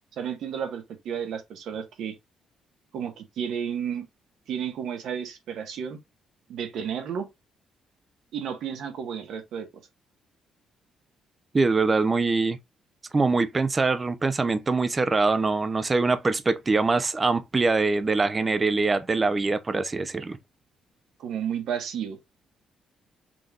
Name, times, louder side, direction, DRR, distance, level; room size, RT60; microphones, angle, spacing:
voice 1, 0.2-2.1 2.9-4.1 4.5-6.0 6.5-7.3 8.3-9.7 21.2-22.2, right 8 dB, 75° right, 1.5 m, -32 dB
voice 2, 11.5-12.6 13.1-20.4, right 3 dB, 25° right, 0.7 m, -23 dB
6.0 x 3.4 x 2.5 m
cardioid pair, 90°, 0 cm